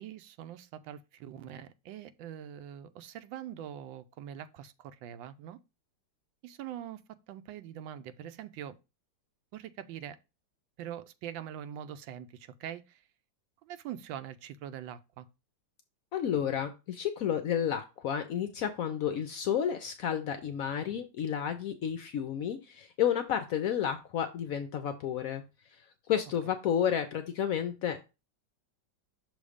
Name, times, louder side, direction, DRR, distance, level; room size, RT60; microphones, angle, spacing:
voice 1, 0.0-5.6 6.4-7.0 7.3-8.7 9.5-10.2 10.8-13.0 13.6-15.3, right 10 dB, 85° right, 1.3 m, -43 dB
voice 2, 16.1-25.4 26.1-28.0, left 9 dB, 75° left, 0.8 m, -31 dB
6.3 x 3.1 x 4.9 m
omnidirectional pair, 2.0 m